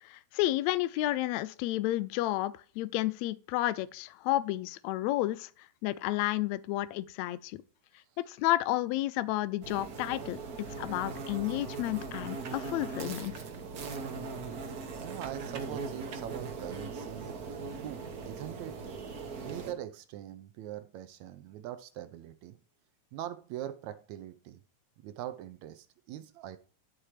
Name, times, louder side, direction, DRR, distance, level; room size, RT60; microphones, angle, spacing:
voice 1, 0.0-5.5 5.8-7.6 8.3-10.4 10.8-13.3, left 16 dB, 80° left, 1.7 m, -31 dB
sound 1, 9.6-19.7, right 4 dB, 60° right, 0.9 m, -40 dB
voice 2, 15.0-17.4 17.8-18.8 19.4-22.6 23.1-24.6 25.0-26.6, right 12 dB, 75° right, 1.9 m, -42 dB
12.0 x 4.4 x 4.9 m
omnidirectional pair, 3.5 m